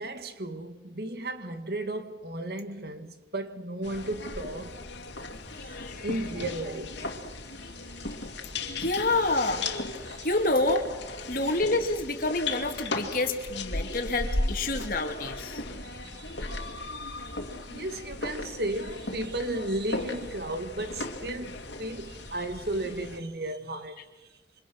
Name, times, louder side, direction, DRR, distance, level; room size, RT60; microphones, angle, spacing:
voice 1, 0.0-4.9 5.6-8.8 10.0-10.3 13.9-14.0 15.8-24.6, right 1 dB, 60° right, 1.8 m, -35 dB
sound 1, 3.8-23.2, left 2 dB, 80° left, 2.5 m, -36 dB
voice 2, 5.5-6.2 8.6-15.7 17.3-17.4, left 2 dB, 50° left, 2.7 m, -29 dB
28.5 x 25.5 x 6.2 m
head